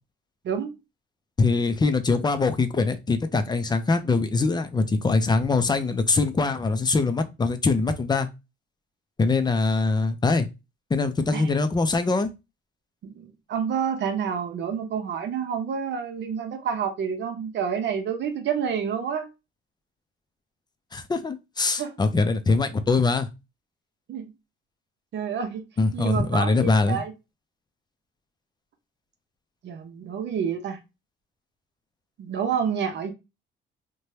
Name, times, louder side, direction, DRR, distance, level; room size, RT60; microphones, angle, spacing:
voice 1, 1.4-8.3 9.2-10.5 10.9-12.3 20.9-23.3 25.8-27.0, left 3 dB, 20° left, 0.5 m, -23 dB
voice 2, 13.0-19.3 21.8-21.9 24.1-24.3 25.1-25.6 25.9-27.1 29.6-30.8 32.2-33.1, right 7 dB, 65° right, 0.7 m, -28 dB
2.8 x 2.2 x 3.1 m
cardioid pair, 90°, 20 cm